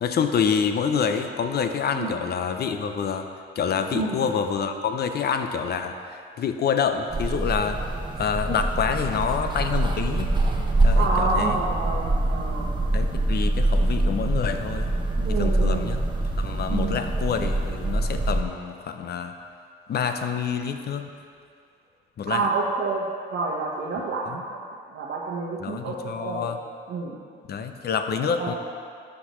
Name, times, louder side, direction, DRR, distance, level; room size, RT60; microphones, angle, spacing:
voice 1, 0.0-3.3 3.6-7.8 8.2-10.3 10.8-11.6 12.9-14.9 15.3-16.0 16.4-19.3 19.9-21.1 22.2-22.5 25.6-26.6 27.5-28.5, left 6 dB, 55° left, 7 dB, 0.6 m, -27 dB
sound 1, 7.1-18.4, right 2 dB, 25° right, 0.9 m, -24 dB
voice 2, 10.9-12.7 15.2-15.9 16.7-17.0 22.3-24.6 24.9-26.4 26.9-27.2 28.4-28.5, right 3 dB, 75° right, -5 dB, 1.1 m, -28 dB
12.0 x 5.9 x 3.1 m, 2.3 s
cardioid pair, 90°, 20 cm